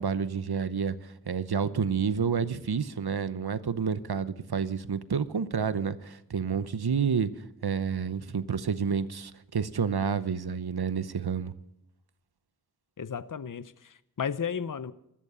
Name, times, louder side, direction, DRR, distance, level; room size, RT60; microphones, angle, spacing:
voice 1, 0.0-7.3 7.6-11.5, right 6 dB, 80° right, 15 dB, 0.8 m, -29 dB
voice 2, 13.0-14.9, left 7 dB, 55° left, 16 dB, 0.7 m, -34 dB
15.0 x 13.0 x 6.9 m, 0.82 s
wide cardioid pair, 40°, 38 cm